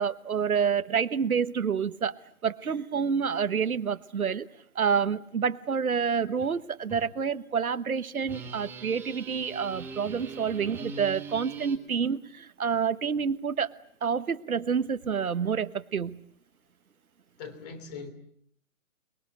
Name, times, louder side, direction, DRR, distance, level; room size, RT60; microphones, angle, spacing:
voice 1, 0.0-2.1 2.4-4.5 4.7-13.7 14.0-16.2, right 6 dB, 85° right, 12 dB, 1.3 m, -28 dB
sound 1, 6.4-6.6 6.9-7.1 8.3-11.8, right 5 dB, 5° right, 1.3 m, -41 dB
voice 2, 17.4-18.1, left 5 dB, 30° left, 10 dB, 3.3 m, -40 dB
29.0 x 21.5 x 8.0 m, 0.64 s
hypercardioid pair, 150°, 42 cm